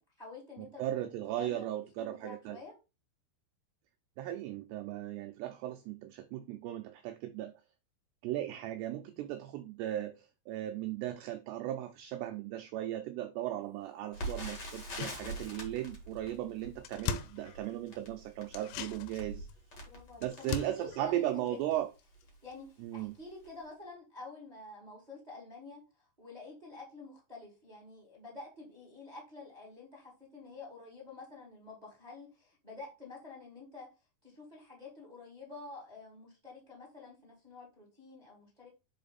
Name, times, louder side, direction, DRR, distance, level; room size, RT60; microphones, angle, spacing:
voice 1, 0.0-1.0 1.3-2.8 19.8-21.6 22.4-33.9 34.2-38.7, left 3 dB, 15° right, 1.8 m, -49 dB
voice 2, 0.6-2.6 4.2-7.5 8.2-19.5 20.2-21.9 22.8-23.1, right 13 dB, 80° right, 2.6 m, -37 dB
Crackle, 14.1-21.1 21.7-21.8 22.1-22.3 23.0-23.2 23.4-23.5, right 1 dB, 50° left, 1.2 m, -44 dB
sound 1, 14.7-15.9 16.2-16.3 16.5-18.0 18.5-22.2 22.5-22.6, left 9 dB, 90° left, 3.2 m, -42 dB
7.6 x 4.3 x 4.1 m
omnidirectional pair, 5.4 m